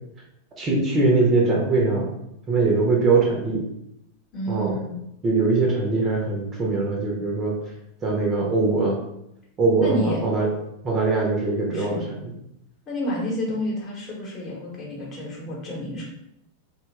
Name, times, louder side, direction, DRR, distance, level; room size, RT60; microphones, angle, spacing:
voice 1, 0.6-2.1 2.5-3.6 4.5-4.8 5.2-7.6 8.0-9.0 9.6-10.5 10.8-12.3, right 3 dB, 25° right, -2 dB, 0.7 m, -22 dB
voice 2, 4.3-5.0 9.7-10.2 11.7-12.0 12.9-16.1, equal, 30° left, -4 dB, 1.0 m, -29 dB
2.8 x 2.3 x 3.0 m, 0.79 s
figure-of-eight pair, 90°, 0 cm